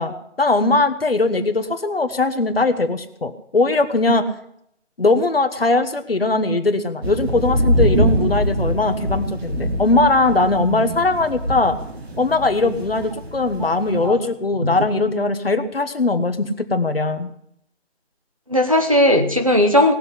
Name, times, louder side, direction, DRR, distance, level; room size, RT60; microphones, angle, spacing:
voice 1, 0.0-4.2 5.0-11.8 12.2-17.3, left 3 dB, 50° left, 8 dB, 1.4 m, -20 dB
sound 1, 7.0-14.1, equal, 55° right, 2.8 m, -24 dB
voice 2, 18.5-19.9, left 1 dB, 30° right, 3 dB, 0.9 m, -17 dB
18.5 x 6.7 x 9.7 m, 0.73 s
figure-of-eight pair, 180°, 37 cm